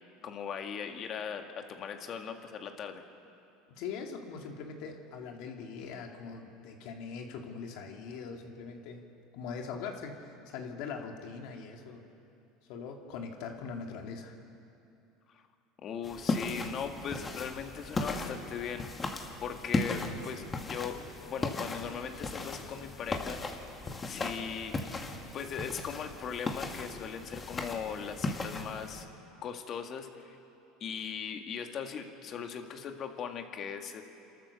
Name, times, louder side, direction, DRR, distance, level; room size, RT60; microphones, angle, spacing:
voice 1, 0.2-3.0 15.3-15.4 15.8-18.9 19.4-23.5 24.1-24.7 25.3-29.1 29.4-30.4 30.8-34.0, left 7 dB, 45° left, 5 dB, 1.9 m, -39 dB
voice 2, 3.7-9.0 9.3-12.0 12.7-14.4, left 5 dB, 70° left, 2 dB, 2.5 m, -41 dB
sound 1, 16.0-29.0, left 3 dB, 25° left, 2.0 m, -37 dB
28.5 x 13.0 x 6.9 m, 2.7 s
supercardioid pair, 105°, 0 cm